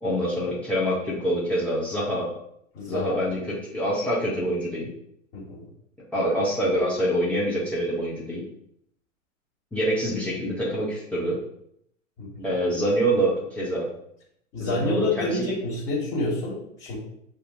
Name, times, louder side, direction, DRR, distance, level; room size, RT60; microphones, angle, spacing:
voice 1, 0.0-2.3 2.9-4.9 6.1-8.4 9.7-11.4 12.4-13.9 14.6-15.5, right 1 dB, 5° left, -8 dB, 0.3 m, -25 dB
voice 2, 2.7-3.4 5.3-5.6 12.2-12.5 14.5-17.0, left 2 dB, 30° left, -7 dB, 1.6 m, -28 dB
7.5 x 2.6 x 2.5 m, 0.73 s
figure-of-eight pair, 100°, 39 cm